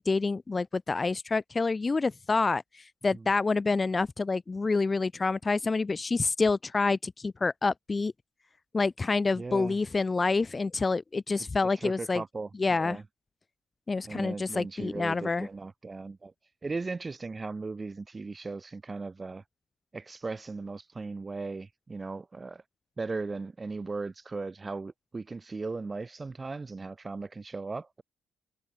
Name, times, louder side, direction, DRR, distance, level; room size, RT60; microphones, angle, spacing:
voice 1, 0.0-8.1 8.7-12.2 12.6-13.0 13.9-15.5, left 3 dB, 30° left, 1.4 m, -27 dB
voice 2, 9.3-9.8 11.4-11.5 11.8-13.0 14.0-16.3 16.6-19.4 19.9-22.6 23.0-28.0, right 3 dB, 30° right, 5.0 m, -37 dB
hypercardioid pair, 45°, 0 cm